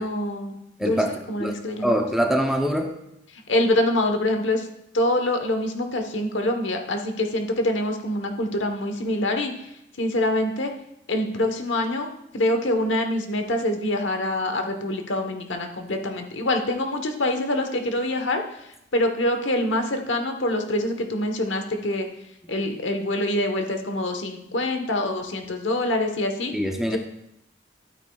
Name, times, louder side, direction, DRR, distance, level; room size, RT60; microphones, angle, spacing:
voice 1, 0.0-2.0 3.3-4.7 4.9-9.5 10.0-10.7 11.1-12.1 12.3-18.4 18.9-22.1 22.5-26.5 26.9-27.0, left 1 dB, 75° left, 5 dB, 1.1 m, -25 dB
voice 2, 0.8-1.1 1.4-1.6 1.8-2.9 26.5-27.0, equal, ahead, 3 dB, 0.6 m, -23 dB
12.5 x 8.7 x 2.3 m, 0.80 s
head